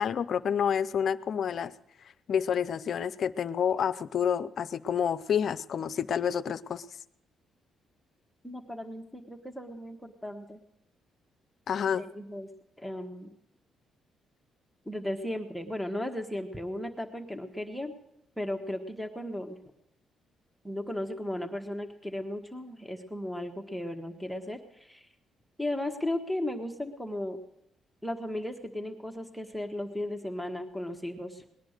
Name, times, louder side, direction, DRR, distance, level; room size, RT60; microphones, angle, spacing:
voice 1, 0.0-1.7 2.3-6.8 11.7-12.0, left 8 dB, 60° left, 15 dB, 0.6 m, -28 dB
voice 2, 8.4-10.6 11.9-12.5 12.8-13.3 14.8-17.9 18.4-19.6 20.6-25.1 25.6-27.4 28.0-31.4, left 1 dB, ahead, 4 dB, 1.3 m, -35 dB
19.5 x 10.5 x 6.5 m, 0.80 s
cardioid pair, 90°, 0 cm